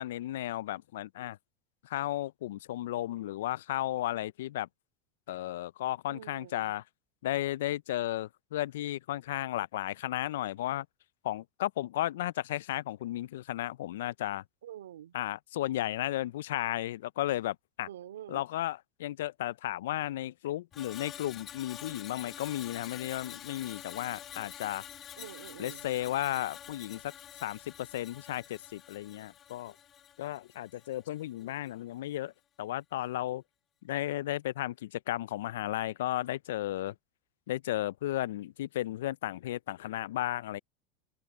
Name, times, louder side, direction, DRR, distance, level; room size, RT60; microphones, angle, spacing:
voice 1, 0.0-1.4 1.8-4.7 5.3-6.8 7.2-10.9 11.2-14.4 15.1-17.9 18.3-24.9 25.6-27.1 27.4-29.7 30.2-32.3 32.6-33.4 33.8-36.9 37.5-40.6, left 14 dB, 75° left, 0.4 m, -34 dB
voice 2, 6.1-6.8 14.6-15.1 17.9-18.5 25.2-25.9, right 11 dB, 85° right, 2.5 m, -46 dB
Screech, 20.7-31.1 31.4-31.7, left 10 dB, 40° left, 1.9 m, -47 dB
hypercardioid pair, 95°, 0 cm